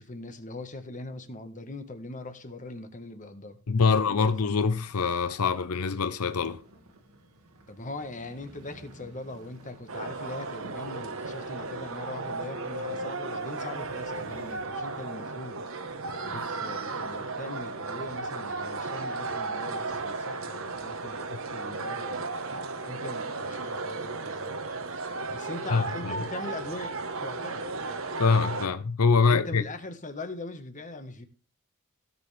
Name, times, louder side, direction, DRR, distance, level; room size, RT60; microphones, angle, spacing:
voice 1, 0.0-4.6 7.7-15.6 16.2-22.4 22.8-24.6 25.3-27.0 27.2-27.7 29.2-31.3, left 2 dB, 35° left, 1.6 m, -41 dB
voice 2, 3.7-6.6 16.3-16.4 25.7-26.1 28.2-29.6, left 5 dB, 85° left, 0.7 m, -24 dB
sound 1, 6.3-14.6, right 1 dB, 90° right, 2.2 m, -54 dB
sound 2, 9.9-28.7, right 3 dB, 65° right, 1.3 m, -35 dB
16.5 x 6.9 x 3.5 m
head